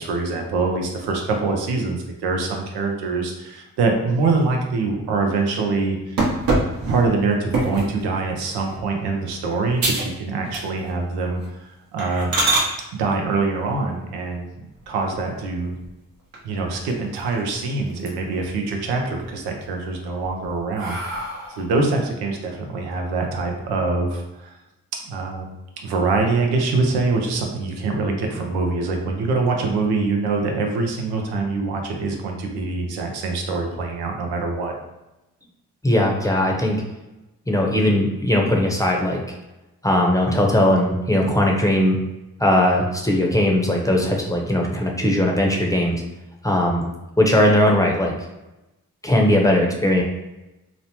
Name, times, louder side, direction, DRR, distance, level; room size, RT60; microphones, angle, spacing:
voice 1, 0.0-6.2 6.9-12.3 12.9-14.5 14.9-15.7 16.4-24.5 25.0-34.7, right 3 dB, 85° right, 2 dB, 0.5 m, -24 dB
sound 1, 6.2-8.0 8.5-8.8 9.3-9.4 9.8-10.2 10.5-11.0 11.3-11.5 12.0-12.7 14.7-15.4 15.8-15.9 16.3-16.4 16.7-17.5 17.9-18.5 18.9-19.5 20.0-21.8, right 2 dB, 65° right, 0.9 m, -25 dB
voice 2, 35.8-36.8 37.5-39.2 39.8-42.0 42.4-46.0 46.4-46.8 47.2-48.1 49.0-50.0, left 1 dB, 10° left, 0 dB, 0.7 m, -19 dB
3.0 x 2.0 x 2.8 m, 0.99 s
supercardioid pair, 40°, 38 cm